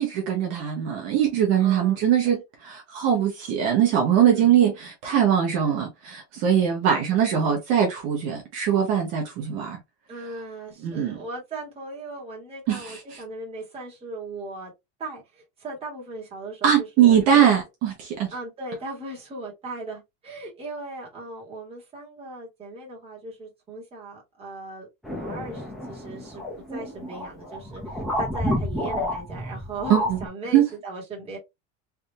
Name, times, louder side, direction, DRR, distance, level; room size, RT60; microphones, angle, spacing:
voice 1, 0.0-9.8 10.8-11.2 12.7-13.2 16.6-18.3 29.9-30.2 30.5-30.6, right 9 dB, 45° right, 1.1 m, -21 dB
voice 2, 1.6-2.3 4.3-4.5 6.5-7.6 10.1-14.7 15.0-17.5 18.3-26.4 26.7-31.4, right 2 dB, 15° right, 1.4 m, -38 dB
sound 1, 25.0-30.3, left 1 dB, ahead, 0.5 m, -30 dB
3.4 x 2.7 x 2.6 m
cardioid pair, 170°, 37 cm